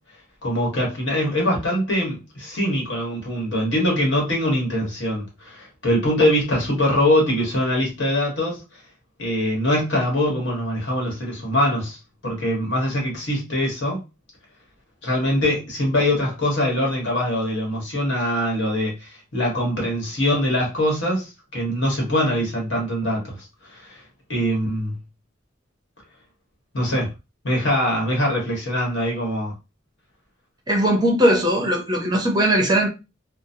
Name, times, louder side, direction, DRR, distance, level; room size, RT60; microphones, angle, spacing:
voice 1, 0.4-8.6 9.2-12.0 12.2-14.0 15.0-23.4 23.7-24.0 24.3-25.0 26.7-27.1 27.4-29.5, left 1 dB, 65° left, 1.3 m, -23 dB
voice 2, 30.7-32.9, right 1 dB, 20° right, 0.6 m, -19 dB
2.9 x 2.0 x 2.6 m
head